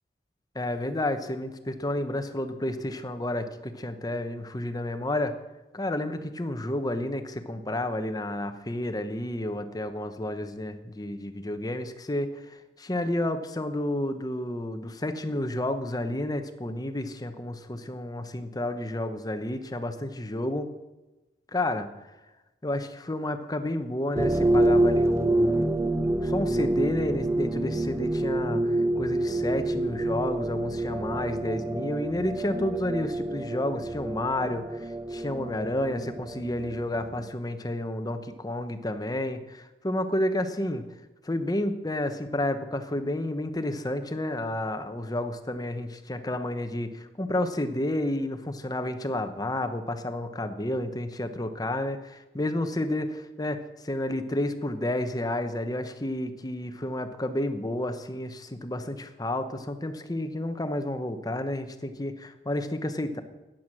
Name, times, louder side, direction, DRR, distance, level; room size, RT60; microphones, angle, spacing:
voice 1, 0.5-5.3 5.7-20.7 21.5-21.9 22.6-25.8 26.2-40.8 41.2-63.2, left 1 dB, 20° left, 9 dB, 1.0 m, -31 dB
sound 1, 24.2-37.3, right 1 dB, 15° right, 0.4 m, -27 dB
14.0 x 10.5 x 6.2 m, 1.1 s
head